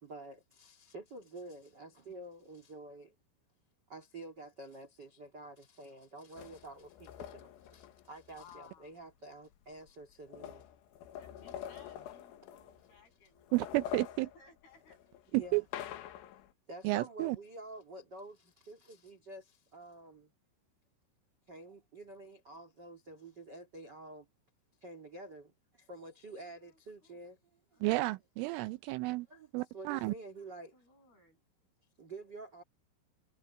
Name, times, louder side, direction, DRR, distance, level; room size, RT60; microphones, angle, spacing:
voice 1, 0.0-3.1 3.9-10.6 12.0-12.1 15.3-15.6 16.7-20.3 21.5-24.3 24.8-27.8 29.3-30.7 32.0-32.6, right 2 dB, 35° right, 1.8 m, -49 dB
sound 1, 6.4-8.6 9.5-9.6 9.9-13.0 13.4-16.5, left 11 dB, 75° left, 3.8 m, -46 dB
voice 2, 8.3-9.0 11.1-14.0 14.3-15.0 25.9-26.0 26.4-27.2 27.7-28.3 30.7-31.4, left 6 dB, 50° left, 9.7 m, -61 dB
voice 3, 13.5-14.3 15.3-15.6 16.8-17.4 27.8-29.3 29.5-30.1, right 22 dB, 85° right, 2.9 m, -31 dB
omnidirectional pair, 5.9 m